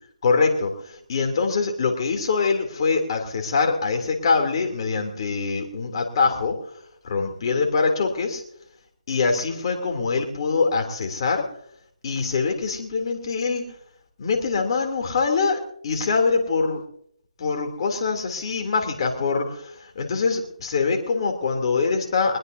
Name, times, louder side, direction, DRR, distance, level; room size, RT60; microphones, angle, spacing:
voice 1, 0.2-6.6 7.0-8.4 9.1-11.4 12.0-13.6 14.2-16.8 17.4-22.4, left 4 dB, 40° left, 3 dB, 3.1 m, -24 dB
22.0 x 20.5 x 2.8 m, 0.67 s
figure-of-eight pair, 150°, 4 cm